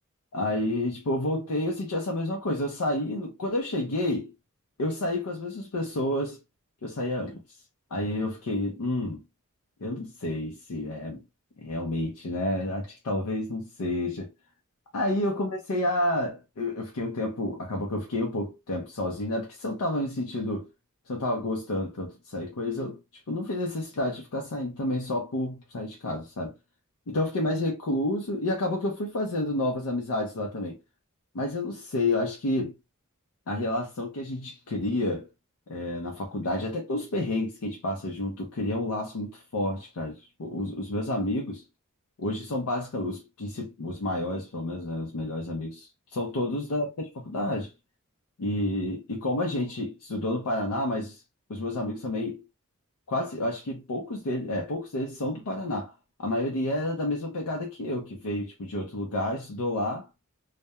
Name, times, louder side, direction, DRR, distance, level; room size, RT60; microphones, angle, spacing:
voice 1, 0.3-4.3 4.8-6.4 6.8-7.6 7.9-9.2 9.8-11.2 11.6-14.3 14.9-20.7 21.1-26.5 27.1-30.8 31.3-32.8 33.5-35.3 35.7-41.6 42.2-47.7 48.4-51.2 51.5-52.4 53.1-55.9 56.2-60.1, left 1 dB, 90° left, 0.5 m, -30 dB
2.2 x 2.1 x 2.9 m
head